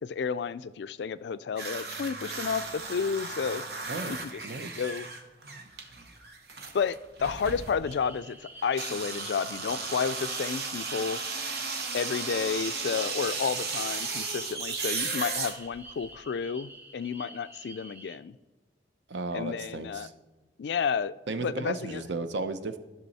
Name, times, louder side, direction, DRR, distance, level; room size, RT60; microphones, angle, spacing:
voice 1, 0.0-3.6 4.1-4.4 4.8-5.1 6.7-11.2 11.9-18.3 19.3-20.1 20.6-21.1 21.4-22.1, left 6 dB, 80° left, 15 dB, 0.3 m, -31 dB
sound 1, 1.6-8.0 8.6-16.1, right 4 dB, 65° right, 1.2 m, -35 dB
voice 2, 4.4-4.8 19.1-20.1 21.3-22.8, right 3 dB, 90° right, 10 dB, 0.7 m, -34 dB
sound 2, 8.0-18.2, right 2 dB, 10° right, 0.6 m, -49 dB
13.5 x 6.1 x 4.1 m, 1.1 s
head